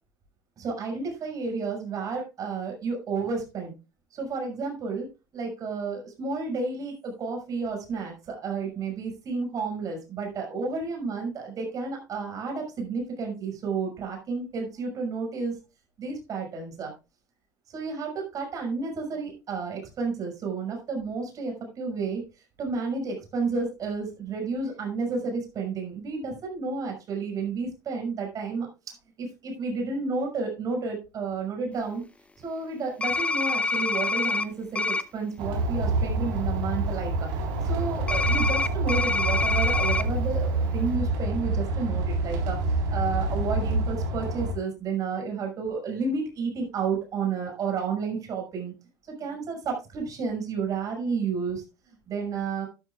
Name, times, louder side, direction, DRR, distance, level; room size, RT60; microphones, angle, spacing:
voice 1, 0.6-3.7 4.1-5.1 5.3-15.6 16.0-16.9 17.7-22.2 22.6-28.7 29.2-32.0 32.4-37.3 37.6-48.7 49.1-51.6 52.1-52.7, right 4 dB, 40° right, 2 dB, 6.0 m, -31 dB
sound 1, 33.0-34.5 34.8-35.0 38.1-40.0, left 3 dB, 15° left, 0.8 m, -26 dB
sound 2, 35.4-44.5, right 2 dB, 55° right, 3.9 m, -27 dB
12.5 x 11.5 x 2.4 m, 0.30 s
figure-of-eight pair, 75°, 10 cm